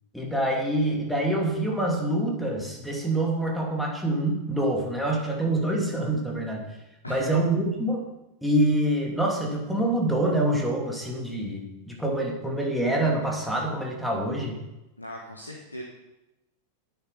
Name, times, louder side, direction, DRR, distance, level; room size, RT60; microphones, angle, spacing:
voice 1, 0.1-6.6 7.1-8.0 8.4-14.6, right 1 dB, ahead, -2 dB, 2.8 m, -26 dB
voice 2, 7.0-7.4 15.0-15.8, left 1 dB, 85° left, 1 dB, 1.2 m, -38 dB
10.0 x 9.3 x 5.5 m, 0.98 s
figure-of-eight pair, 90°, 0 cm